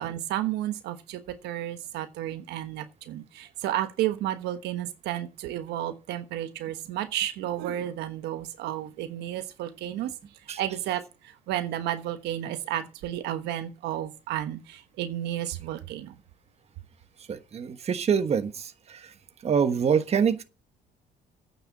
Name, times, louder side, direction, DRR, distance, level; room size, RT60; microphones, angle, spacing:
voice 1, 0.0-10.1 10.6-16.1, right 12 dB, 85° right, 1.2 m, -32 dB
voice 2, 17.3-19.0 19.4-20.4, right 7 dB, 40° right, 1.2 m, -25 dB
9.2 x 6.8 x 8.6 m
cardioid pair, 110°, 17 cm